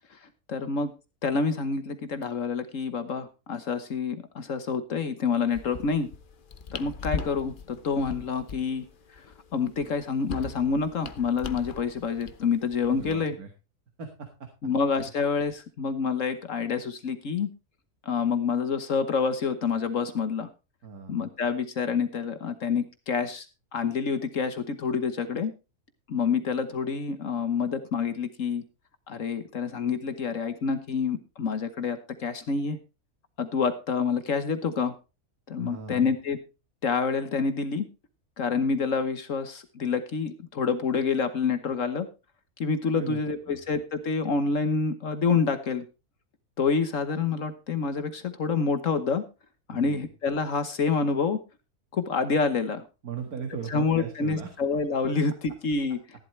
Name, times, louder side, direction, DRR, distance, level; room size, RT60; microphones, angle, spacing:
voice 1, 0.5-0.9 1.2-6.1 6.7-8.8 9.5-13.4 14.6-17.5 18.0-20.5 21.1-23.5 23.7-25.5 26.1-28.6 29.1-32.8 33.4-34.9 35.5-36.4 36.8-37.9 38.4-42.1 42.6-45.8 46.6-49.2 49.7-51.4 51.9-52.8 53.7-56.0, left 5 dB, 60° left, 10 dB, 1.4 m, -27 dB
sound 1, 5.5-13.1, left 5 dB, 40° left, 0.8 m, -40 dB
voice 2, 12.9-13.5 14.0-14.5 20.8-21.2 35.6-36.1 42.9-43.2 43.5-43.6 49.7-50.1 53.0-54.5, right 6 dB, 75° right, 5 dB, 2.2 m, -38 dB
14.5 x 11.5 x 3.2 m, 0.30 s
omnidirectional pair, 1.6 m